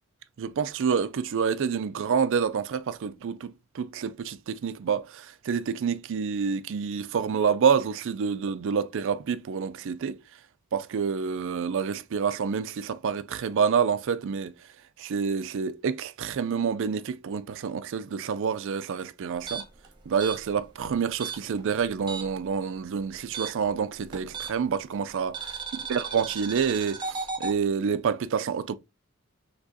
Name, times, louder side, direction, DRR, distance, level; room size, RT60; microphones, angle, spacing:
voice 1, 0.4-10.2 10.7-14.5 15.0-19.6 20.1-25.4 25.9-28.7, right 6 dB, 60° right, 0.4 m, -28 dB
sound 1, 19.4-22.5 22.7-24.8 25.3-27.6, right 5 dB, 20° right, 0.9 m, -36 dB
6.1 x 2.9 x 2.7 m
head